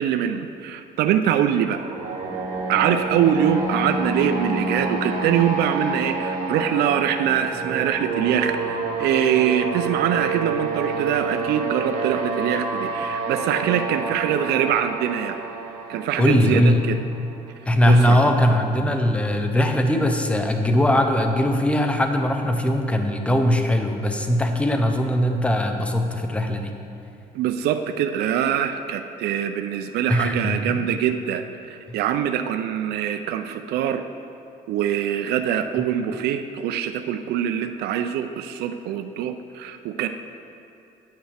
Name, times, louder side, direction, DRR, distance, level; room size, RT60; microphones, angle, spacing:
voice 1, 0.0-1.8 2.7-15.4 15.9-17.0 17.8-18.3 27.3-34.0 34.7-40.1, right 9 dB, 75° right, 7 dB, 0.4 m, -23 dB
Deep horn, 1.6-17.4, right 3 dB, 55° right, 2.0 m, -28 dB
voice 2, 16.2-16.8 17.6-26.7 30.1-30.8, left 1 dB, 5° left, 5 dB, 0.7 m, -20 dB
9.0 x 8.7 x 3.4 m, 2.7 s
cardioid pair, 110°, 17 cm